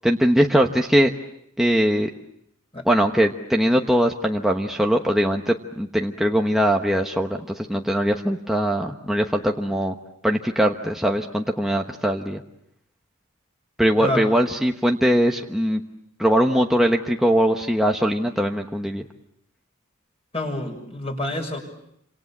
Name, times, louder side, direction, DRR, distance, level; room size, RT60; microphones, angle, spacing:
voice 1, 0.0-1.1 1.6-2.1 2.8-9.9 10.2-12.4 13.8-15.8 16.2-19.1, equal, ahead, 1 dB, 1.1 m, -21 dB
voice 2, 20.3-21.6, left 1 dB, 25° left, 3 dB, 6.2 m, -28 dB
29.0 x 26.5 x 7.3 m, 0.75 s
head